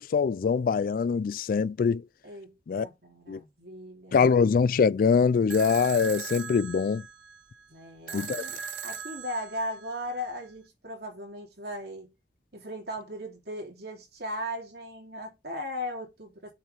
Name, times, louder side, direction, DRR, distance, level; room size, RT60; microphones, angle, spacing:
voice 1, 0.0-2.0 2.7-2.9 3.3-3.4 4.1-7.0 8.1-8.4, left 5 dB, 50° left, 0.3 m, -23 dB
voice 2, 2.2-4.3 7.7-12.1 12.5-16.5, equal, 65° right, 3.0 m, -38 dB
sound 1, 5.5-10.5, right 6 dB, 80° right, 0.9 m, -40 dB
7.5 x 5.6 x 3.4 m
head